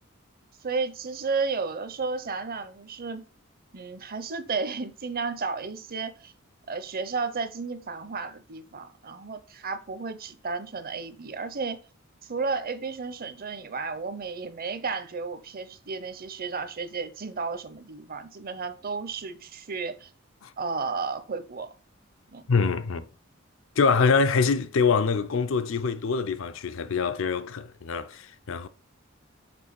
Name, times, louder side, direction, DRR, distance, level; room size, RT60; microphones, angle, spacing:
voice 1, 0.6-3.2 3.7-6.3 6.7-11.8 12.2-20.1 20.6-21.7 22.3-22.5, right 4 dB, 45° right, 0.7 m, -33 dB
voice 2, 22.5-23.0 23.8-28.7, left 5 dB, 70° left, 0.5 m, -24 dB
6.1 x 3.7 x 4.7 m
head